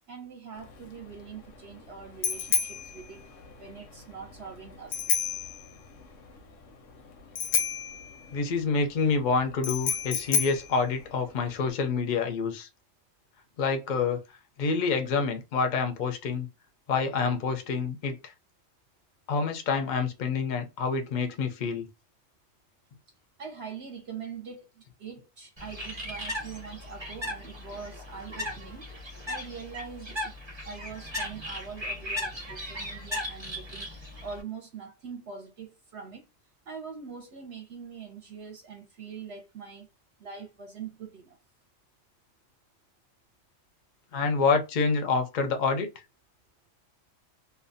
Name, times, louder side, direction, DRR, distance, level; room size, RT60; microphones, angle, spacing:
voice 1, 0.1-3.3 3.6-5.2 23.4-28.9 29.2-30.4 30.6-33.9 34.2-36.3 36.7-39.9 40.2-41.4, right 6 dB, 65° right, 0.8 m, -43 dB
Bicycle bell, 0.6-11.7, left 7 dB, 80° left, 1.0 m, -32 dB
voice 2, 8.3-12.7 13.6-14.2 14.6-16.5 16.9-18.3 19.3-21.9 44.1-45.9, left 4 dB, 50° left, 0.6 m, -27 dB
Bird, 25.6-34.4, left 1 dB, 25° right, 0.7 m, -37 dB
2.6 x 2.2 x 2.5 m
omnidirectional pair, 1.3 m